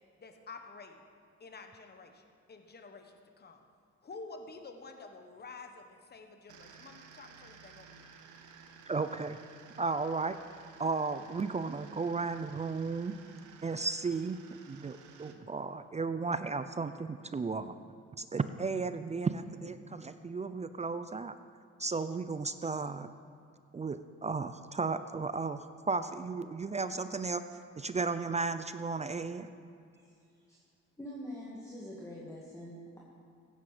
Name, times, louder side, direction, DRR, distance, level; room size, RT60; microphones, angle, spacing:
voice 1, 0.2-1.0 1.4-3.6 4.0-8.1, left 3 dB, 35° left, 5 dB, 1.3 m, -49 dB
sound 1, 6.5-15.3, right 6 dB, 80° right, 1.2 m, -55 dB
voice 2, 8.9-9.4 9.8-10.4 10.8-13.1 13.6-14.4 14.7-17.7 18.2-21.3 21.8-23.1 23.7-27.4 27.8-29.5, right 4 dB, 25° right, 11 dB, 0.5 m, -34 dB
voice 3, 31.0-33.0, left 1 dB, 10° left, -6 dB, 2.3 m, -44 dB
15.5 x 9.9 x 5.0 m, 2.4 s
cardioid pair, 90°, 30 cm